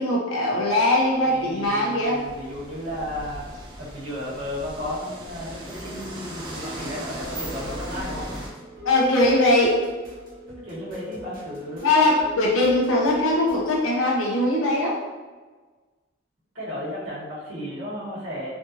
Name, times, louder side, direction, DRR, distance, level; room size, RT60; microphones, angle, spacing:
voice 1, 0.0-2.2 8.8-9.8 11.8-14.9, left 1 dB, 75° left, -3 dB, 0.9 m, -21 dB
sound 1, 0.8-8.5, equal, 20° right, 0.4 m, -38 dB
voice 2, 1.3-3.4 3.8-8.3 10.5-12.1 16.5-18.5, equal, 80° right, -10 dB, 1.5 m, -34 dB
sound 2, 6.4-13.8, left 1 dB, 45° right, 0.8 m, -43 dB
3.5 x 2.6 x 2.7 m, 1.3 s
head